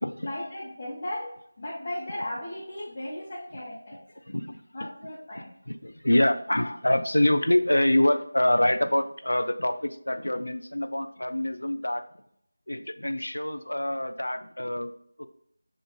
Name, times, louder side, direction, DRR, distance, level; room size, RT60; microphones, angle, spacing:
voice 1, 0.2-4.0 4.7-5.5, left 1 dB, 30° left, -7 dB, 0.8 m, -36 dB
voice 2, 4.3-4.6 5.3-12.0 12.7-15.3, left 1 dB, 75° left, 8 dB, 0.4 m, -26 dB
6.8 x 2.4 x 2.3 m, 0.71 s
figure-of-eight pair, 165°, 0 cm